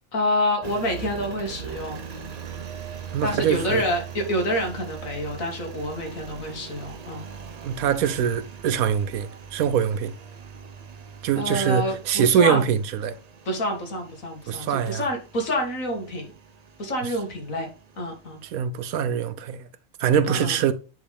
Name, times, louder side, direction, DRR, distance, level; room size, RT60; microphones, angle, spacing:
voice 1, 0.1-2.0 3.2-7.3 11.4-12.6 13.5-16.3 16.8-17.7 18.0-18.4 20.3-20.6, equal, 70° left, 2.2 m, -27 dB
Engine, 0.6-18.6, right 7 dB, 45° right, 0.5 m, -41 dB
voice 2, 3.1-3.8 7.6-10.1 11.2-13.2 14.5-15.0 18.5-19.7 20.0-20.7, right 8 dB, 85° right, 1.1 m, -23 dB
9.3 x 3.9 x 3.4 m
omnidirectional pair, 1.5 m